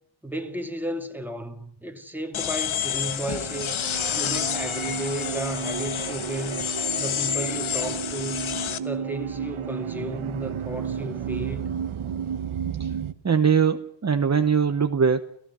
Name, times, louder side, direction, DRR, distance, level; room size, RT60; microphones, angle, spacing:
voice 1, 0.2-3.8 4.1-6.7 7.0-11.7, right 1 dB, 5° right, 2.6 m, -34 dB
sound 1, 2.3-8.8, left 9 dB, 75° left, 1.3 m, -29 dB
sound 2, 2.8-13.1, right 8 dB, 85° right, 1.3 m, -32 dB
voice 2, 13.2-15.2, right 6 dB, 35° right, 1.0 m, -21 dB
29.5 x 15.5 x 6.2 m
wide cardioid pair, 130°, 48 cm